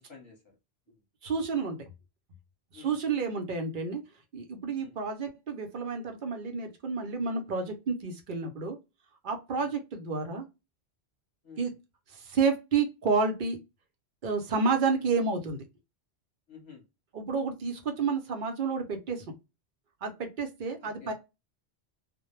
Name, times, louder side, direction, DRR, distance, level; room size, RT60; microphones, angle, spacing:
voice 1, 1.2-1.8 2.7-4.0 4.3-8.8 9.2-10.4 11.6-11.7 12.1-13.6 14.2-15.6 17.1-19.2 20.0-21.1, right 4 dB, 55° right, 0.7 m, -30 dB
voice 2, 16.5-16.8 20.8-21.1, left 6 dB, 25° left, 0.9 m, -50 dB
2.1 x 2.1 x 3.0 m
omnidirectional pair, 1.1 m